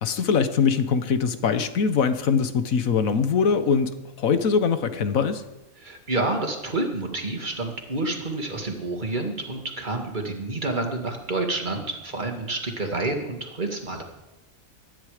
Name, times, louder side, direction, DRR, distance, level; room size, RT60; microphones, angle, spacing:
voice 1, 0.0-3.9 4.2-5.4, left 6 dB, 70° left, 11 dB, 1.4 m, -22 dB
voice 2, 5.8-14.0, right 2 dB, 30° right, 3 dB, 2.2 m, -29 dB
19.0 x 13.0 x 5.0 m, 0.99 s
omnidirectional pair, 1.5 m